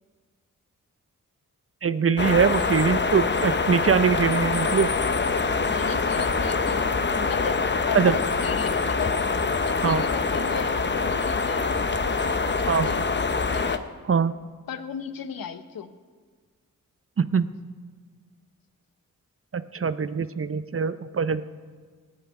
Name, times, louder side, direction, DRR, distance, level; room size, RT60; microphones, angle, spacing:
voice 1, 1.8-4.9 7.9-8.2 9.8-10.0 12.7-12.9 14.1-14.3 17.2-17.5 19.5-21.4, right 6 dB, 40° right, 13 dB, 0.6 m, -22 dB
sound 1, 2.2-13.8, left 4 dB, 35° left, 0.8 m, -25 dB
voice 2, 5.7-9.2 9.6-11.6 12.0-13.1 13.5-13.9 14.7-15.9, left 7 dB, 90° left, 10 dB, 0.8 m, -36 dB
16.0 x 5.5 x 9.1 m, 1.5 s
cardioid pair, 55°, 33 cm